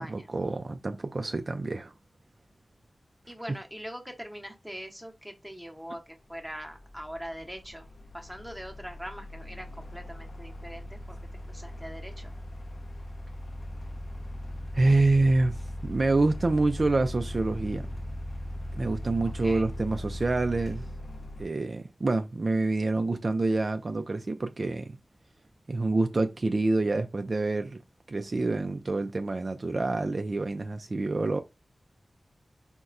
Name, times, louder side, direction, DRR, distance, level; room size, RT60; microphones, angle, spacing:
voice 1, 0.0-1.9 14.7-17.9 18.7-20.9 21.4-25.0 25.7-27.8 28.1-31.4, right 2 dB, 50° right, 0.3 m, -27 dB
voice 2, 3.3-7.9 8.1-11.2 11.5-12.3 19.2-19.7, equal, ahead, 0.8 m, -42 dB
sound 1, 5.7-5.8 6.3-21.5, equal, 65° left, 0.5 m, -39 dB
4.1 x 2.1 x 2.4 m
wide cardioid pair, 100°, 0 cm